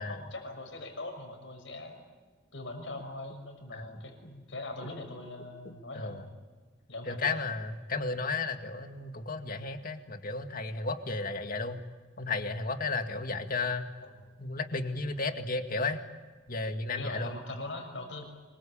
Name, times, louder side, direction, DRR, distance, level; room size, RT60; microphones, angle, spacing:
voice 1, 0.0-2.0 2.5-6.3 6.9-7.4 14.0-14.1 16.9-18.2, left 2 dB, 80° left, 5 dB, 6.3 m, -41 dB
voice 2, 7.1-11.8 12.2-13.9 14.4-16.0 16.5-17.4, left 3 dB, 50° left, 7 dB, 2.1 m, -33 dB
26.0 x 23.0 x 8.8 m, 1.4 s
head